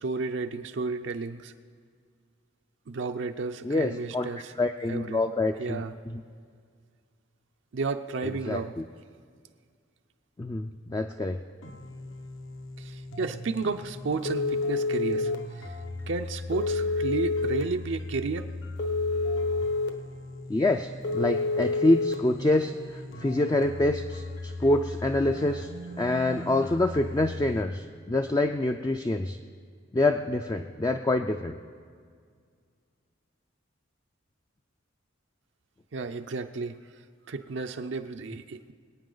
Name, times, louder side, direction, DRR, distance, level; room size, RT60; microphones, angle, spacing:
voice 1, 0.0-1.5 2.9-4.5 4.9-5.2 5.6-5.9 7.7-8.7 12.8-15.8 16.1-18.5 35.9-36.8 37.3-38.7, right 4 dB, 65° right, 7 dB, 0.5 m, -32 dB
voice 2, 3.6-4.3 4.6-6.2 8.5-8.8 10.4-11.4 20.5-25.7 26.0-29.4 29.9-31.5, left 2 dB, 20° left, 5 dB, 0.3 m, -26 dB
sound 1, 11.6-27.6, left 2 dB, 80° left, 1.3 m, -39 dB
Telephone, 14.3-15.4 16.5-17.6 18.8-19.9 21.0-22.1, left 3 dB, 60° left, 1.1 m, -27 dB
24.0 x 9.0 x 3.9 m, 2.1 s
head